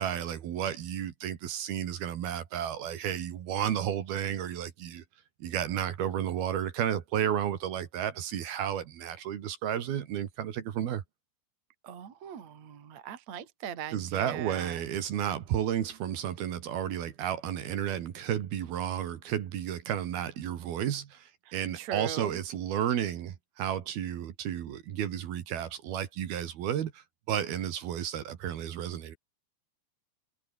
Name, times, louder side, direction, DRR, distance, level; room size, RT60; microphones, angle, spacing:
voice 1, 0.0-5.0 5.4-11.0 13.9-29.2, right 10 dB, 65° right, 3.5 m, -32 dB
voice 2, 11.8-14.8 21.5-22.4, right 9 dB, 45° right, 3.3 m, -40 dB
omnidirectional pair, 5.1 m